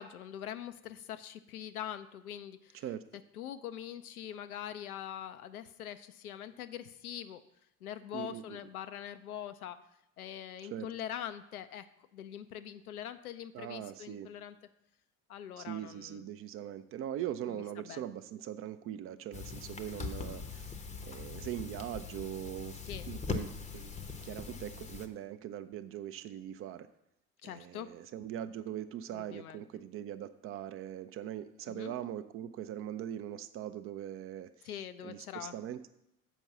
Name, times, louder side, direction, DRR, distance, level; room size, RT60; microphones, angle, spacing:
voice 1, 0.0-2.8 3.3-7.4 7.8-9.8 10.2-11.9 12.1-14.6 15.3-16.3 17.5-18.0 22.9-23.1 27.4-27.9 29.1-29.6 31.7-32.0 34.6-35.5, left 10 dB, 75° left, 11 dB, 0.6 m, -43 dB
voice 2, 8.1-8.6 10.6-10.9 13.5-14.3 15.6-20.7 21.0-22.8 23.1-26.9 27.4-34.7 35.0-35.9, right 11 dB, 30° right, 11 dB, 0.4 m, -41 dB
sound 1, 19.3-25.1, left 5 dB, 15° left, 0.7 m, -41 dB
7.2 x 5.3 x 5.9 m, 0.85 s
figure-of-eight pair, 60°, 45 cm